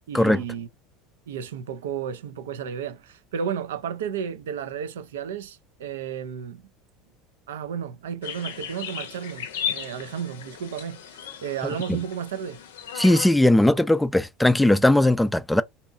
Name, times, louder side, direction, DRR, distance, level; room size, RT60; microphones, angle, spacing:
voice 1, 0.1-0.7 1.3-6.6 7.5-11.0 11.4-12.6, right 8 dB, 85° right, 0.4 m, -33 dB
sound 1, 8.2-13.3, left 9 dB, 85° left, 0.5 m, -35 dB
voice 2, 11.6-12.0 13.0-15.6, left 1 dB, 5° left, 0.3 m, -19 dB
2.8 x 2.2 x 2.4 m
hypercardioid pair, 85°, 0 cm